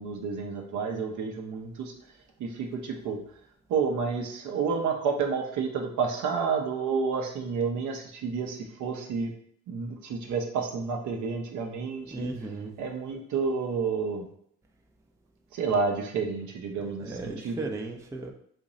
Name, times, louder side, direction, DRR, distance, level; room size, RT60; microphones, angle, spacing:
voice 1, 0.0-1.9 2.4-3.2 3.7-9.3 9.7-12.3 12.8-14.3 15.5-17.7, right 5 dB, 60° right, 3 dB, 0.8 m, -30 dB
voice 2, 12.1-12.8 17.0-18.3, right 3 dB, 10° right, 3 dB, 0.5 m, -36 dB
3.0 x 2.6 x 3.8 m, 0.65 s
supercardioid pair, 75°, 33 cm